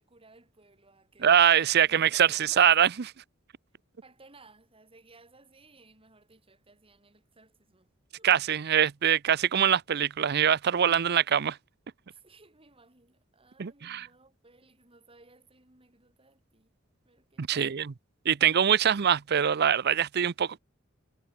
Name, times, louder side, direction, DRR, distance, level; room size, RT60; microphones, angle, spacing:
voice 1, 0.0-1.5 1.8-2.7 4.0-8.3 12.1-16.7 17.0-17.8, right 3 dB, 30° right, 3.9 m, -58 dB
voice 2, 1.2-3.1 8.2-11.6 13.6-14.1 17.4-17.8 18.3-20.6, right 9 dB, 55° right, 0.6 m, -23 dB
head